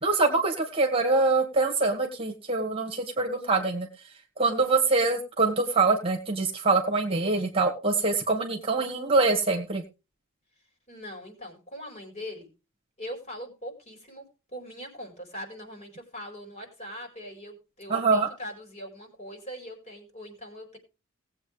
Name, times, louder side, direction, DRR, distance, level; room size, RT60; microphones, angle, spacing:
voice 1, 0.0-3.9 4.4-9.8 17.9-18.3, right 3 dB, 25° right, 2 dB, 2.0 m, -24 dB
voice 2, 10.9-12.5 13.0-20.8, equal, 35° left, 2 dB, 4.7 m, -41 dB
19.0 x 8.1 x 3.4 m, 0.30 s
head